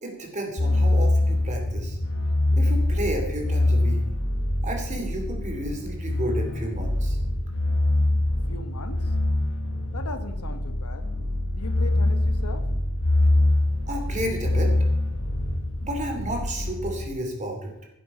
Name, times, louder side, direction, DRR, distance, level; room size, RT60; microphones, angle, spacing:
voice 1, 0.0-2.0 2.5-4.0 4.6-7.2 13.9-14.7 15.8-17.7, right 1 dB, 35° right, 2 dB, 2.7 m, -32 dB
sound 1, 0.6-17.1, left 1 dB, 60° left, 1.4 m, -24 dB
voice 2, 8.5-9.1 9.9-11.1 11.5-12.7, left 3 dB, 85° left, 9 dB, 1.3 m, -38 dB
15.5 x 7.8 x 5.4 m, 0.90 s
head